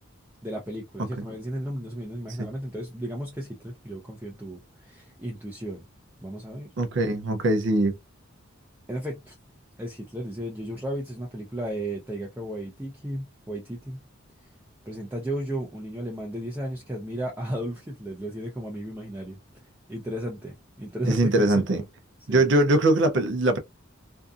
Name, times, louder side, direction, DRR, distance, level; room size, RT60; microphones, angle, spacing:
voice 1, 0.4-5.9 6.2-6.7 8.9-9.4 9.8-14.0 14.9-19.4 19.9-21.7 22.3-22.5, right 1 dB, 10° right, 0.5 m, -34 dB
voice 2, 6.8-8.0 21.0-21.8 22.3-23.6, right 2 dB, 60° right, 0.5 m, -22 dB
2.6 x 2.4 x 2.3 m
head